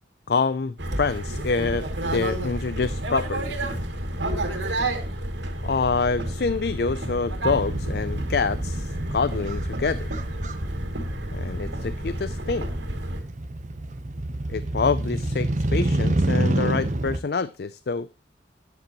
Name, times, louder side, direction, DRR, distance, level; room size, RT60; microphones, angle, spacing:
voice 1, 0.3-3.6 5.6-10.1 11.3-12.7 14.5-18.1, left 4 dB, 60° left, 16 dB, 0.4 m, -26 dB
sound 1, 0.8-13.2, right 1 dB, 80° right, 2.7 m, -30 dB
Motorcycle, 7.4-17.2, right 1 dB, 40° right, 0.9 m, -28 dB
13.0 x 10.5 x 3.0 m, 0.29 s
head